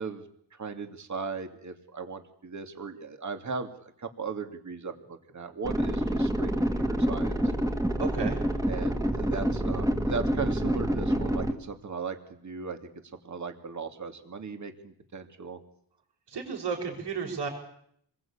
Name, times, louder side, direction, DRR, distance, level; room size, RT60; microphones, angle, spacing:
voice 1, 0.0-6.5 6.8-7.4 8.7-12.9 13.2-15.6, right 5 dB, 40° right, 7 dB, 2.5 m, -37 dB
sound 1, 5.6-11.5, equal, 10° right, 2.1 m, -27 dB
voice 2, 8.0-8.6 16.3-17.5, right 5 dB, 70° right, -4 dB, 5.8 m, -33 dB
27.5 x 21.0 x 8.7 m, 0.70 s
wide cardioid pair, 150°, 43 cm